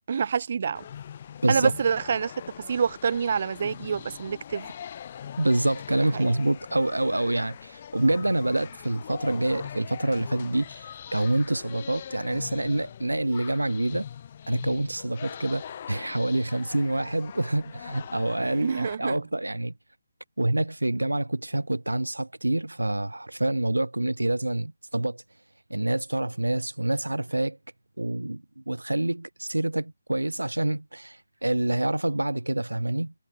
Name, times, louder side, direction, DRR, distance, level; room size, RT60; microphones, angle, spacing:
voice 1, 0.1-0.8 1.5-2.3 2.7-4.7 6.1-6.3 18.4-19.2, right 6 dB, 40° right, 1.9 m, -27 dB
sound 1, 0.7-19.0, left 9 dB, 30° left, 4.0 m, -42 dB
voice 2, 5.4-14.1 14.5-19.7 20.4-25.2 25.7-27.6 28.0-33.1, right 1 dB, 80° right, 1.4 m, -27 dB
figure-of-eight pair, 150°, 0 cm